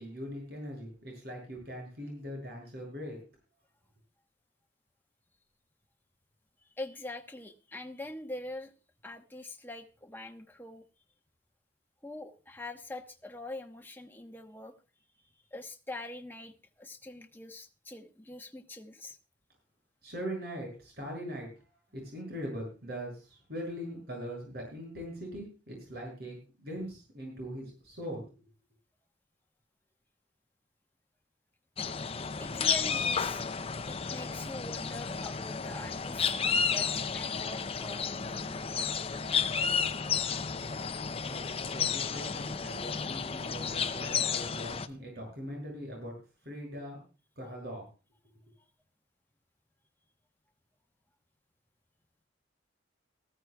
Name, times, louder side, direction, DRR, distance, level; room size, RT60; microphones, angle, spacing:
voice 1, 0.0-3.2 20.0-21.5 21.9-28.5 41.3-46.1 46.4-47.0 47.4-47.9, equal, 55° right, 1 dB, 6.8 m, -41 dB
voice 2, 6.8-8.7 9.0-10.8 12.0-14.7 15.5-19.2 32.4-33.4 33.9-39.4, left 1 dB, 10° left, 4 dB, 1.1 m, -44 dB
sound 1, 31.8-44.9, left 6 dB, 30° left, 0.6 m, -32 dB
19.0 x 14.5 x 2.3 m, 0.33 s
head